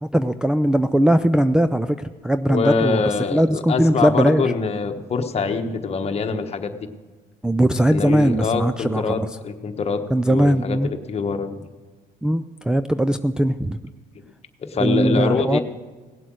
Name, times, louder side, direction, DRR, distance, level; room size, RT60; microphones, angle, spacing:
voice 1, 0.0-4.5 7.4-9.3 10.1-10.9 12.2-13.8 14.8-15.6, right 1 dB, 5° right, 7 dB, 0.3 m, -20 dB
voice 2, 2.5-6.7 7.9-10.0 10.3-10.8 11.1-11.7 14.7-15.6, left 4 dB, 40° left, 6 dB, 1.3 m, -24 dB
17.5 x 7.8 x 6.3 m, 1.3 s
cardioid pair, 110°, 17 cm